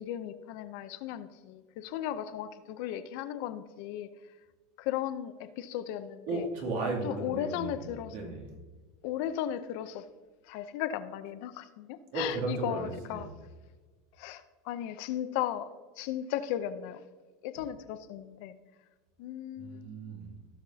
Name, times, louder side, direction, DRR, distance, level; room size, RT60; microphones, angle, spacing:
voice 1, 0.0-4.1 4.8-6.5 7.0-8.1 9.0-10.1 10.4-13.3 14.2-17.0 17.4-18.6 19.2-19.9, left 11 dB, 60° left, 11 dB, 0.7 m, -36 dB
voice 2, 6.3-8.5 12.1-13.3 19.6-20.3, right 3 dB, 60° right, -1 dB, 2.7 m, -35 dB
16.5 x 6.0 x 2.8 m, 1.4 s
supercardioid pair, 140°, 0 cm